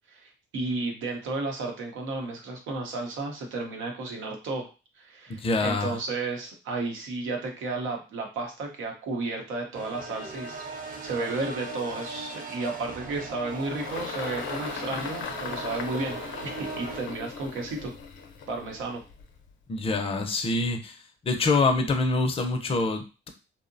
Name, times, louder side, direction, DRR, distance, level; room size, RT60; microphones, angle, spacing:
voice 1, 0.1-4.7 5.0-10.6 11.0-17.9 18.5-19.0, right 3 dB, 85° right, 2 dB, 0.8 m, -33 dB
voice 2, 5.4-6.0 19.7-21.0 21.2-23.3, left 3 dB, 30° left, 6 dB, 0.5 m, -25 dB
sound 1, 9.7-17.0, right 3 dB, 40° right, 0.7 m, -39 dB
Engine, 12.9-19.5, left 6 dB, 75° left, 0.6 m, -38 dB
2.7 x 2.0 x 2.6 m, 0.31 s
cardioid pair, 90°, 20 cm